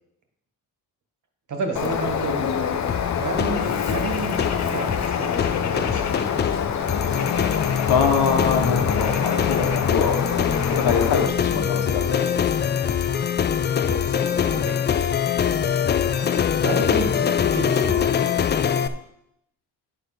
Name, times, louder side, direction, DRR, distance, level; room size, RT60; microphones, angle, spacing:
voice 1, 1.5-2.5 3.2-6.6 9.7-9.8 13.4-13.5 13.8-14.1 14.4-14.8 16.6-18.3, right 4 dB, 50° right, 4 dB, 1.8 m, -32 dB
Bird, 1.8-11.3, left 7 dB, 45° left, 0.8 m, -26 dB
sound 1, 2.9-18.9, left 8 dB, 30° left, 0.4 m, -24 dB
voice 2, 7.9-10.2 10.7-12.7, left 6 dB, 85° left, 4 dB, 1.5 m, -24 dB
10.0 x 4.9 x 6.0 m, 0.79 s
cardioid pair, 150°, 38 cm